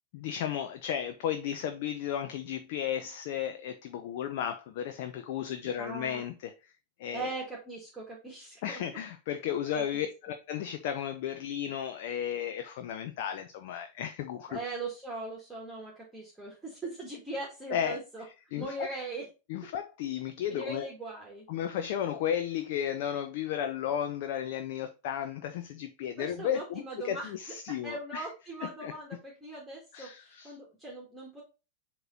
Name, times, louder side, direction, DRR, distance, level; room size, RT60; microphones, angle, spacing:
voice 1, 0.1-6.7 7.0-7.3 8.6-14.6 17.7-18.0 18.5-18.9 19.5-20.9 21.5-28.3 28.8-28.9 29.9-30.6, left 9 dB, 50° left, 0.6 m, -34 dB
voice 2, 5.8-6.3 7.1-8.8 9.7-10.1 14.5-18.2 18.6-19.3 20.5-21.5 26.2-27.3 27.7-31.4, right 2 dB, 10° right, 2.0 m, -40 dB
7.8 x 3.1 x 3.9 m
figure-of-eight pair, 90°, 0 cm